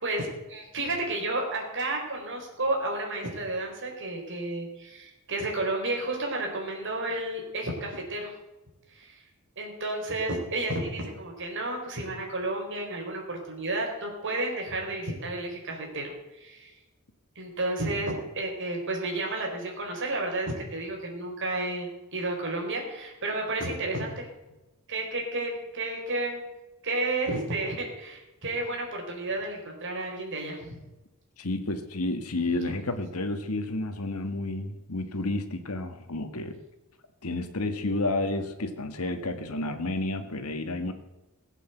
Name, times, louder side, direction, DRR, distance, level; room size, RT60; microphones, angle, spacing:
voice 1, 0.0-8.3 8.9-9.2 9.6-16.7 17.3-24.3 24.9-26.4 26.8-30.8, right 2 dB, 60° right, 1 dB, 4.5 m, -32 dB
voice 2, 31.4-36.6 37.2-40.9, left 2 dB, 75° left, 8 dB, 1.8 m, -31 dB
16.5 x 8.4 x 8.1 m, 1.0 s
head